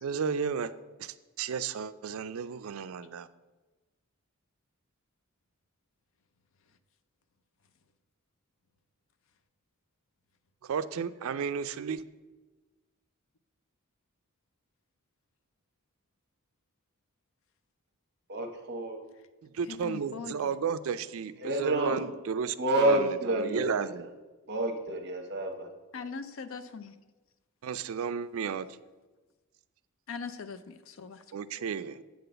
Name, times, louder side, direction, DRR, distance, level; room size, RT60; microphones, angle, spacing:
voice 1, 0.0-0.7 1.0-3.3 10.6-12.0 19.4-24.1 27.6-28.7 31.3-32.0, right 6 dB, 70° right, 13 dB, 0.4 m, -33 dB
voice 2, 18.3-19.0 21.4-22.1 22.6-23.7 24.5-25.7, right 1 dB, 50° right, 4 dB, 0.9 m, -28 dB
voice 3, 19.7-20.5 25.9-26.9 30.1-31.2, left 5 dB, 60° left, 12 dB, 0.5 m, -40 dB
8.2 x 4.0 x 6.7 m, 1.2 s
head